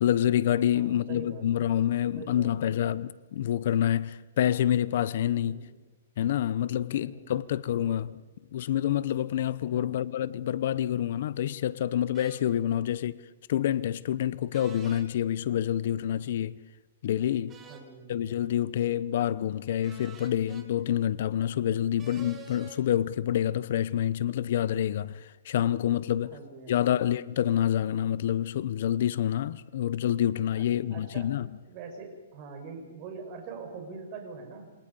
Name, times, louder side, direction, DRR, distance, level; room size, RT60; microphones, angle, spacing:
voice 1, 0.0-5.6 6.2-8.2 8.5-13.1 13.5-16.5 17.0-17.6 18.1-26.3 26.7-31.5, left 11 dB, 55° left, 0.8 m, -27 dB
voice 2, 0.7-1.5 2.2-2.7 5.4-5.8 6.9-7.4 7.8-8.2 9.6-10.1 12.8-13.0 17.6-18.4 22.1-22.4 26.2-26.9 30.5-31.4 31.7-34.7, right 5 dB, 35° right, 5.8 m, -44 dB
sound 1, 12.1-12.4 14.5-15.1 17.5-17.9 19.8-20.7 22.0-22.8, right 5 dB, 15° right, 2.7 m, -48 dB
27.5 x 26.0 x 5.5 m
hypercardioid pair, 155°, 0 cm